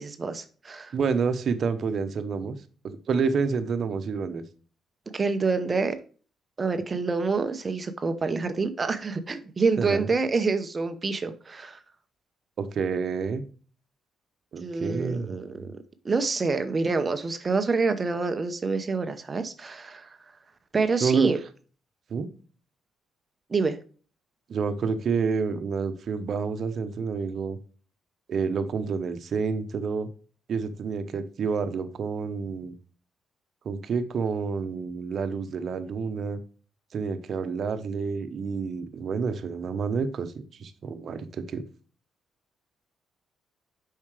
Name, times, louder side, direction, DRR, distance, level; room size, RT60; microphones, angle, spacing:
voice 1, 0.0-1.0 5.1-6.0 6.6-11.8 14.6-15.7 16.0-20.2 20.7-21.4 23.5-23.8, right 4 dB, 30° right, 0.8 m, -27 dB
voice 2, 0.9-2.6 2.8-4.4 9.8-10.1 12.6-13.4 14.5-15.7 21.0-21.3 22.1-22.3 24.5-27.6 28.3-30.1 30.5-32.7 33.6-36.4 36.9-40.3 40.6-41.6, right 5 dB, 55° right, 1.0 m, -29 dB
7.2 x 5.6 x 3.3 m
cardioid pair, 90°, 0 cm